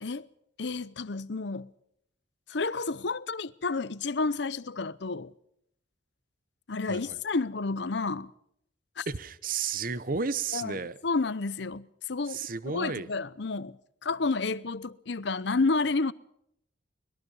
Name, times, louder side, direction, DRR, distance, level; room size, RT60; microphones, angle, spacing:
voice 1, 0.6-1.7 2.5-5.3 6.7-8.3 9.0-9.1 10.5-16.1, left 3 dB, 60° left, 0.7 m, -30 dB
voice 2, 9.1-11.0 12.3-13.1, right 5 dB, 45° right, 0.9 m, -32 dB
23.0 x 21.0 x 5.5 m
head